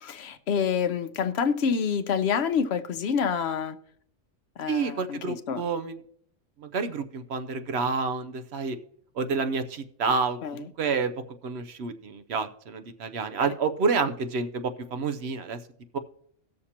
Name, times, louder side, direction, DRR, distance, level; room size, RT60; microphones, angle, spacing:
voice 1, 0.0-3.8 4.6-5.6 10.4-10.6, left 6 dB, 65° left, 10 dB, 0.9 m, -27 dB
voice 2, 4.7-6.0 6.6-8.8 9.1-11.1 11.4-15.6 15.9-16.0, right 4 dB, 65° right, 9 dB, 0.9 m, -29 dB
18.0 x 6.6 x 2.8 m, 0.66 s
omnidirectional pair, 1.2 m